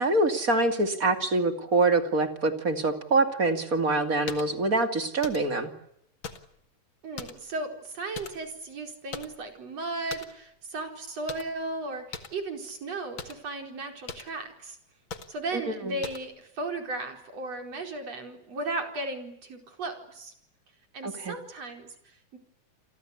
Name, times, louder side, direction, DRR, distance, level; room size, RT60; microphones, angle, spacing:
voice 1, 0.0-5.7 15.8-15.9 21.0-21.4, right 2 dB, 30° right, 7 dB, 2.7 m, -25 dB
sound 1, 4.3-4.5 5.2-5.6 6.2-6.6 7.2-7.5 8.1-8.6 9.1-9.5 10.1-10.4 11.3-11.6 12.1-12.4 13.2-13.4 14.1-14.3 15.1-15.4 16.0-16.3, left 5 dB, 45° left, 2.4 m, -40 dB
voice 2, 7.0-14.8 15.3-20.3 20.9-22.4, right 2 dB, 50° right, 5 dB, 5.6 m, -36 dB
29.5 x 23.5 x 8.4 m, 0.73 s
omnidirectional pair, 3.7 m